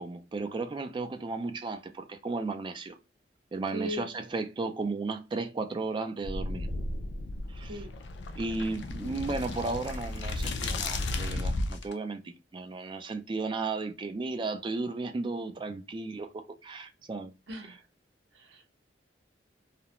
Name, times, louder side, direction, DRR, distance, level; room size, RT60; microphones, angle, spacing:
voice 1, 0.0-3.0 3.5-6.7 7.5-7.8 8.4-17.3, right 3 dB, 25° right, 0.3 m, -34 dB
voice 2, 3.7-4.1 7.7-7.9 17.5-17.8 18.3-18.7, equal, 75° right, 0.7 m, -37 dB
sound 1, 6.2-11.9, left 2 dB, 75° left, 0.4 m, -34 dB
2.4 x 2.0 x 2.8 m
head